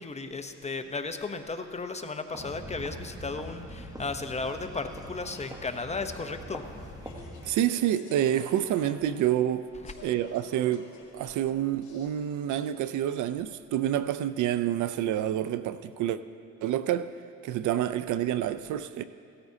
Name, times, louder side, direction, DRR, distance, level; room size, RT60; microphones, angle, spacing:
voice 1, 0.0-6.6 9.8-9.9, left 3 dB, 20° left, 0.8 m, -35 dB
sound 1, 2.3-7.5, right 1 dB, 10° right, 1.2 m, -43 dB
Speech / Chatter, 4.0-13.4, left 4 dB, 75° left, 2.3 m, -52 dB
voice 2, 7.5-9.7 10.0-10.9 11.1-16.2 16.6-17.1 17.4-19.0, right 11 dB, 75° right, 0.5 m, -28 dB
16.5 x 14.0 x 2.8 m
cardioid pair, 90°, 30 cm